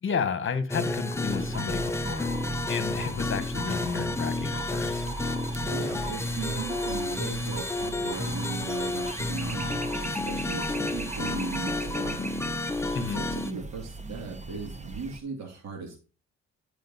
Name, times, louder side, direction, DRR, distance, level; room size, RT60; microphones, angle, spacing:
voice 1, 0.0-2.3 2.7-5.0 12.9-13.2, left 6 dB, 40° left, 1.3 m, -32 dB
sound 1, 0.7-13.5, left 2 dB, 10° left, 0.6 m, -31 dB
sound 2, 1.3-15.2, right 3 dB, 25° right, 0.9 m, -39 dB
voice 2, 5.6-12.3 12.9-16.0, right 5 dB, 60° right, 2.5 m, -38 dB
8.9 x 5.0 x 4.1 m
cardioid pair, 90°, 30 cm